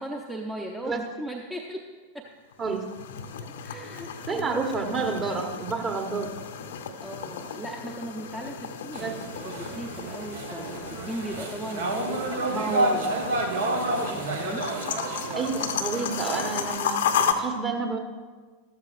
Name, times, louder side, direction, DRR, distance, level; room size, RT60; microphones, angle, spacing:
voice 1, 0.0-1.8 2.1-2.2 2.7-2.8 3.6-4.7 7.0-8.6 8.8-13.2 14.2-14.6, right 1 dB, 5° right, 1 dB, 0.8 m, -37 dB
sound 1, 2.5-17.3, left 7 dB, 60° left, 0.8 m, -34 dB
voice 2, 4.3-6.4 9.0-9.2 12.5-13.0 15.3-18.0, right 4 dB, 25° right, 4 dB, 1.3 m, -29 dB
sound 2, 8.9-16.8, right 2 dB, 65° right, 1.3 m, -30 dB
13.5 x 13.0 x 2.6 m, 1.4 s
figure-of-eight pair, 90°, 0 cm